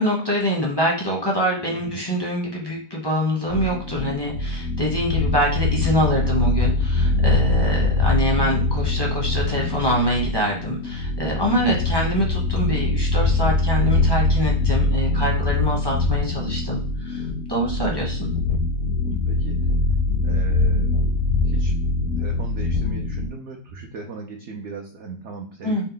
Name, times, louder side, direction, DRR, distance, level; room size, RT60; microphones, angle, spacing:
voice 1, 0.0-18.3 25.6-25.9, equal, 25° left, -2 dB, 0.5 m, -25 dB
voice 2, 1.7-2.0 11.5-11.8 18.9-19.6 20.2-21.0 21.4-21.7 22.2-25.9, right 4 dB, 70° right, 1 dB, 0.6 m, -38 dB
sound 1, 3.5-23.3, left 2 dB, 70° left, 0.8 m, -23 dB
4.5 x 2.1 x 3.8 m, 0.44 s
omnidirectional pair, 1.8 m